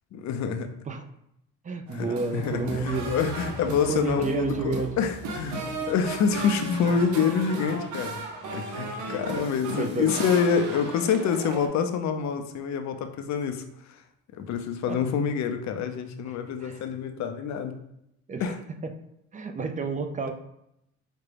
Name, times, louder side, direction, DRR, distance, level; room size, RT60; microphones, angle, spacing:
voice 1, 0.1-0.7 1.9-5.6 5.9-8.3 8.5-13.6 14.4-17.8 18.4-18.6, left 6 dB, 65° left, 7 dB, 0.6 m, -27 dB
voice 2, 1.6-3.2 3.7-4.9 9.0-9.5 9.8-10.1 14.8-15.0 16.6-16.8 18.3-18.9 19.3-20.3, right 4 dB, 25° right, 6 dB, 0.4 m, -31 dB
sound 1, 1.9-11.7, right 3 dB, 75° right, 0.7 m, -36 dB
sound 2, 2.5-8.1 8.4-8.5, left 2 dB, 15° left, 0.7 m, -45 dB
5.0 x 2.2 x 3.3 m, 0.80 s
cardioid pair, 90°, 30 cm